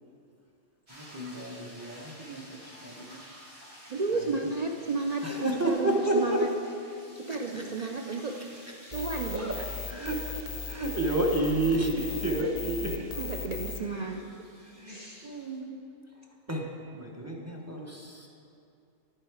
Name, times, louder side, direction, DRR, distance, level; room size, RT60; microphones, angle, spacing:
voice 1, 0.9-3.2 4.1-4.2 5.2-6.4 7.3-8.2 9.3-9.6 9.9-10.4 10.7-13.0 13.8-14.2 14.6-15.7 16.5-16.7 16.9-18.3, right 1 dB, 15° right, 0 dB, 0.8 m, -31 dB
sound 1, 0.9-15.6, equal, 85° right, 3.2 m, -52 dB
voice 2, 3.9-5.2 5.6-6.5 6.9-8.3 8.9-9.6 12.6-12.8 13.2-14.3 14.9-15.4, right 4 dB, 65° right, 2 dB, 0.4 m, -33 dB
sound 2, 8.9-13.8, left 6 dB, 50° left, 0.6 m, -38 dB
10.5 x 7.5 x 4.8 m, 2.6 s
omnidirectional pair, 1.3 m